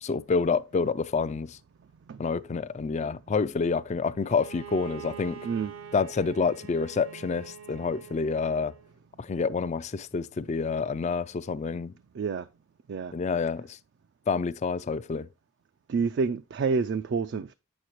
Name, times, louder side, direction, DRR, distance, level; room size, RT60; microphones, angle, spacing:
voice 1, 0.0-1.6 2.2-5.4 5.9-8.7 9.2-11.9 13.1-13.8 14.3-15.3, left 4 dB, 30° left, 0.3 m, -28 dB
Bowed string instrument, 4.2-8.9, right 7 dB, 80° right, 0.8 m, -45 dB
voice 2, 12.1-12.5 12.9-13.1 15.9-17.5, right 5 dB, 55° right, 0.3 m, -28 dB
9.2 x 6.4 x 2.9 m
head